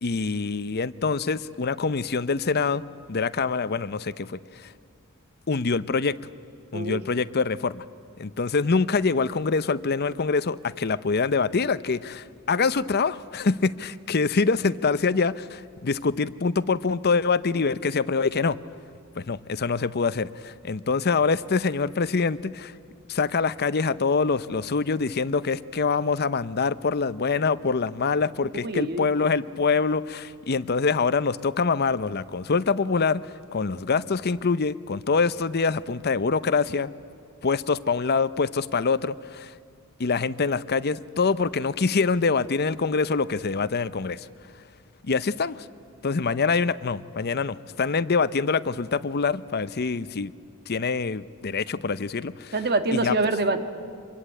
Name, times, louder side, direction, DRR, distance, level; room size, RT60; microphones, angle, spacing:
voice 1, 0.0-4.7 5.5-6.2 6.7-7.8 8.2-18.6 19.2-22.7 23.1-33.2 33.5-36.9 37.4-39.5 40.0-44.3 45.0-45.6 46.0-50.3 50.7-52.5 52.9-53.1, left 4 dB, 50° left, 15 dB, 0.7 m, -25 dB
voice 2, 28.6-29.1 52.5-53.6, right 2 dB, 50° right, 8 dB, 1.7 m, -25 dB
26.5 x 23.0 x 8.9 m, 2.4 s
head